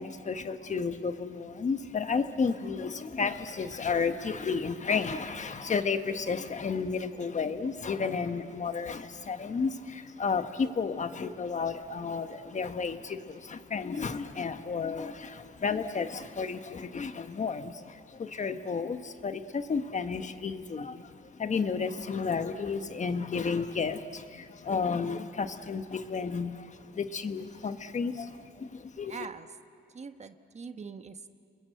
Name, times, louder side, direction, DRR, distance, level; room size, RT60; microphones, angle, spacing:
voice 1, 0.0-29.2, left 5 dB, 35° left, 9 dB, 1.3 m, -32 dB
voice 2, 29.1-29.6 29.9-31.3, right 5 dB, 35° right, 9 dB, 1.1 m, -43 dB
30.0 x 21.5 x 7.8 m, 2.5 s
cardioid pair, 90°, 20 cm